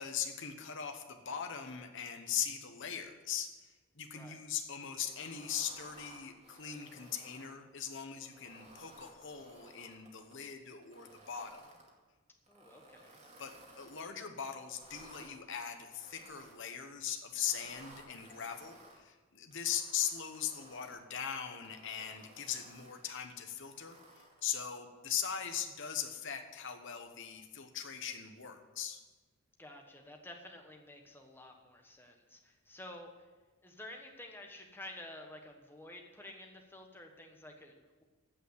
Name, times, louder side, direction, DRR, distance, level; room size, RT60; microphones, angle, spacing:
voice 1, 0.0-11.6 13.4-29.0, left 8 dB, 55° left, 5 dB, 1.1 m, -40 dB
sound 1, 5.0-7.5 8.1-10.3 10.8-11.9 12.4-14.1 14.6-15.3 15.9-16.8 17.3-19.0 19.5-21.0 21.5-23.1 23.6-24.5, right 2 dB, 30° right, 2.3 m, -58 dB
voice 2, 12.5-13.2 29.6-33.3 33.6-38.0, left 1 dB, 10° left, 2 dB, 1.2 m, -51 dB
15.0 x 5.6 x 8.1 m, 1.3 s
head